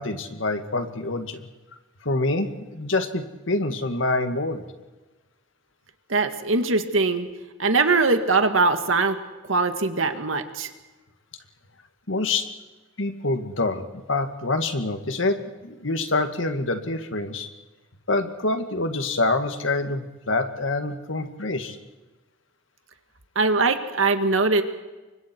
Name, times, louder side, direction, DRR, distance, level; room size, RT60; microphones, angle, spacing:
voice 1, 0.0-1.5 2.0-4.6 12.1-12.5 13.0-17.5 18.1-21.8, left 2 dB, 75° left, 7 dB, 2.0 m, -26 dB
voice 2, 6.1-7.3 7.6-9.2 9.4-10.7 23.4-24.6, right 3 dB, 80° right, 7 dB, 2.0 m, -21 dB
29.5 x 24.5 x 4.6 m, 1.2 s
head